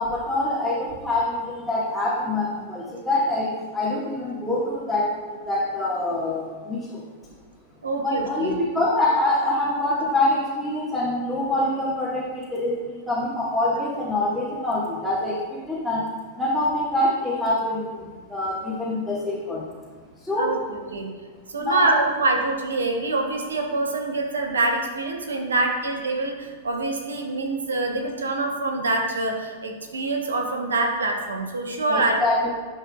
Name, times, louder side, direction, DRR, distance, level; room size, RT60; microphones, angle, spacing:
voice 1, 0.0-7.0 8.0-19.7 20.2-20.5 21.6-21.9 31.9-32.5, left 1 dB, ahead, -11 dB, 1.8 m, -25 dB
voice 2, 7.8-8.5 20.4-21.1 21.5-32.2, right 2 dB, 80° right, 2 dB, 1.2 m, -25 dB
12.5 x 4.3 x 2.4 m, 1.5 s
figure-of-eight pair, 100°, 0 cm